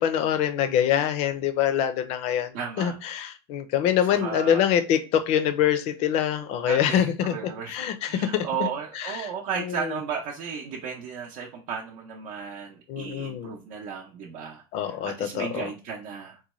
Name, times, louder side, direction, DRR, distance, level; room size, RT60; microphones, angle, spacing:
voice 1, 0.0-7.4 7.7-8.7 8.9-9.3 9.6-10.0 12.9-13.6 14.7-15.7, left 9 dB, 55° left, 10 dB, 0.5 m, -25 dB
voice 2, 2.5-3.0 4.1-4.6 6.7-7.8 8.1-16.4, right 7 dB, 60° right, -1 dB, 0.6 m, -34 dB
3.9 x 2.2 x 3.0 m, 0.33 s
supercardioid pair, 140°, 14 cm